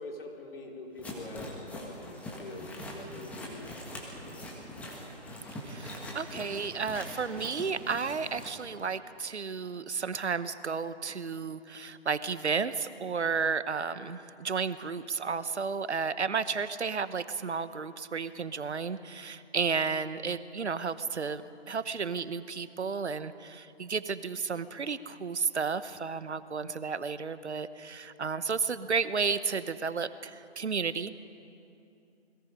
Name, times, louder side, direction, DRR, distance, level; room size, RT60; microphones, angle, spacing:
voice 1, 0.0-4.5, left 2 dB, 55° left, -1 dB, 4.4 m, -45 dB
sound 1, 1.0-8.5, left 1 dB, 5° left, 1.5 m, -42 dB
voice 2, 5.6-31.1, right 5 dB, 75° right, 13 dB, 1.1 m, -32 dB
29.0 x 21.5 x 5.2 m, 2.6 s
figure-of-eight pair, 155°, 34 cm